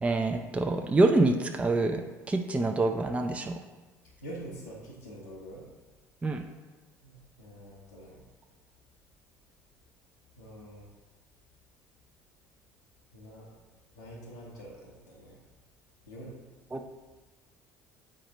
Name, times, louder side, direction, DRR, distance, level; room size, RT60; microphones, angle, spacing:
voice 1, 0.0-2.0 2.3-3.6 6.2-6.4 16.7-16.8, right 2 dB, 15° right, 4 dB, 0.6 m, -26 dB
voice 2, 4.2-5.6 7.0-8.2 10.4-10.9 13.1-13.5 13.9-15.4 16.1-16.4, right 1 dB, 85° left, -7 dB, 1.1 m, -45 dB
8.6 x 4.9 x 3.0 m, 1.2 s
figure-of-eight pair, 60°, 8 cm